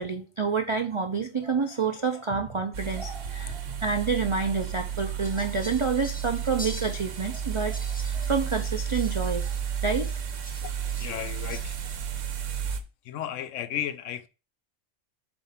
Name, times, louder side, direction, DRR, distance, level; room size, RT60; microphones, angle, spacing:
voice 1, 0.0-9.5 9.8-10.1, right 5 dB, 50° right, 0.3 m, -28 dB
sound 1, 2.7-12.8, right 8 dB, 70° right, 1.1 m, -32 dB
Fowl, 5.2-11.9, left 1 dB, 10° left, 0.5 m, -46 dB
voice 2, 10.5-11.8 13.0-14.3, left 10 dB, 70° left, 0.9 m, -35 dB
7.3 x 2.6 x 5.7 m
omnidirectional pair, 1.4 m